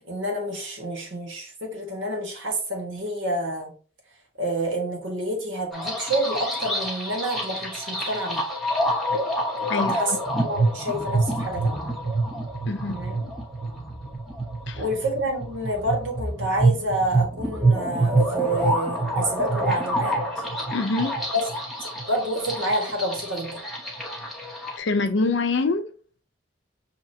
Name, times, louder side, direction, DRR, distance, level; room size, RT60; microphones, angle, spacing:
voice 1, 0.0-3.7 4.4-8.5 9.7-11.8 12.8-13.1 14.8-20.2 21.3-21.4 21.8-23.6, right 1 dB, 80° right, 1.6 m, -28 dB
sound 1, 5.7-24.8, right 2 dB, ahead, 0.9 m, -27 dB
voice 2, 9.7-10.2 12.7-13.0 14.7-14.8 20.7-21.2 24.8-25.9, left 3 dB, 70° left, 0.6 m, -25 dB
6.2 x 2.9 x 2.7 m
head